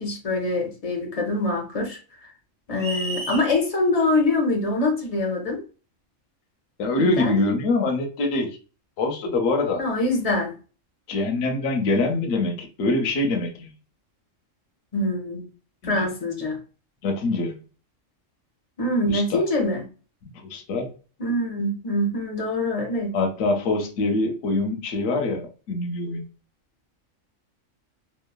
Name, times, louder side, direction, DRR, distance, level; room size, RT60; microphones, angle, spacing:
voice 1, 0.0-2.0 2.7-5.6 7.0-7.4 9.8-10.5 14.9-15.4 15.8-16.6 18.8-19.8 21.2-23.1, left 2 dB, 45° left, 2 dB, 0.5 m, -24 dB
sound 1, 2.8-3.5, right 2 dB, 20° right, 0.3 m, -31 dB
voice 2, 6.8-8.5 9.0-9.9 11.1-13.7 15.8-16.1 17.0-17.6 19.1-19.4 20.4-20.9 23.1-26.3, left 2 dB, 80° left, 3 dB, 1.0 m, -24 dB
2.9 x 2.1 x 2.3 m, 0.36 s
omnidirectional pair, 1.4 m